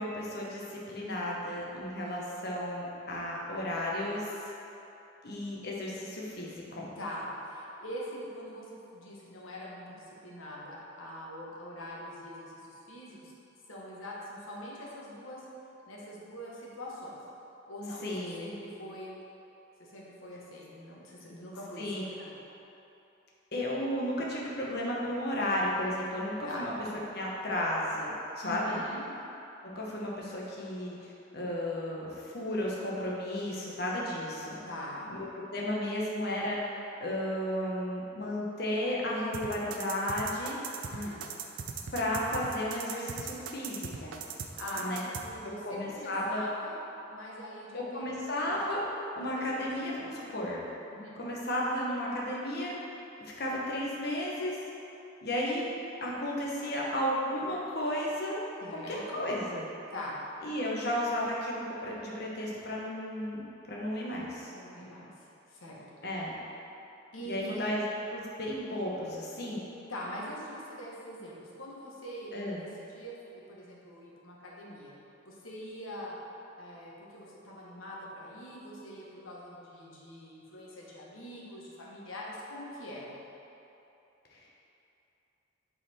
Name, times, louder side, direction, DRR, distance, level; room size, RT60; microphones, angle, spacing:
voice 1, 0.0-4.4 5.2-6.9 18.0-18.5 21.8-22.0 23.5-26.7 27.1-28.8 29.6-34.6 35.1-36.7 37.0-40.6 41.9-44.1 44.8-45.0 45.6-46.4 47.7-48.9 49.2-50.6 51.2-52.7 53.2-54.6 55.2-55.6 56.0-58.4 58.7-59.6 60.4-64.5 66.0-66.4 67.2-69.6 72.3-72.6 84.3-84.5, left 1 dB, 50° left, -4 dB, 1.2 m, -33 dB
voice 2, 6.9-13.3 13.7-15.4 15.9-17.2 17.7-19.1 19.8-22.3 26.4-26.7 28.4-29.0 34.6-35.1 40.9-41.2 44.5-46.8 47.1-48.2 49.3-49.9 50.9-51.2 58.6-59.2 59.9-60.2 64.5-65.1 65.5-65.8 67.1-67.6 69.9-72.3 72.6-74.9 75.2-76.2 76.5-83.2, equal, 80° left, -4 dB, 1.4 m, -43 dB
sound 1, 39.3-45.2, right 6 dB, 75° right, 0.5 m, -39 dB
8.0 x 4.2 x 4.4 m, 2.9 s
head